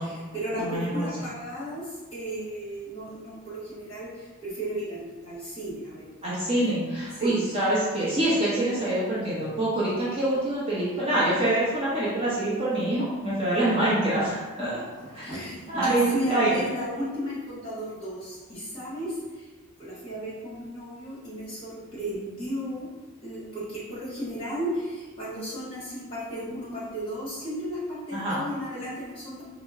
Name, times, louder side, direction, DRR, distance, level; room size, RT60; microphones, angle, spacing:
voice 1, 0.0-1.8 2.1-4.1 4.4-6.1 7.1-7.3 15.0-19.1 19.8-22.9 23.2-29.4, equal, 25° left, -9 dB, 1.3 m, -34 dB
voice 2, 0.6-1.1 6.2-14.8 15.1-15.3 15.7-16.6 28.1-28.4, right 1 dB, 25° right, -9 dB, 0.7 m, -25 dB
4.2 x 2.0 x 3.6 m, 1.3 s
head